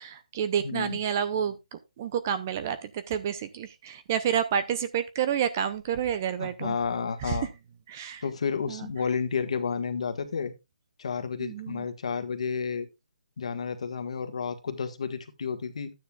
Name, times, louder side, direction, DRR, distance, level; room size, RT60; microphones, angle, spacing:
voice 1, 0.0-6.8 7.2-7.5 7.9-8.2 8.7-8.9 11.4-11.9, right 8 dB, 20° right, 0.5 m, -29 dB
voice 2, 0.6-1.0 6.4-7.5 8.2-10.5 11.0-12.9 13.4-15.9, left 5 dB, 50° left, 1.4 m, -31 dB
12.5 x 9.4 x 2.3 m
hypercardioid pair, 175°, 4 cm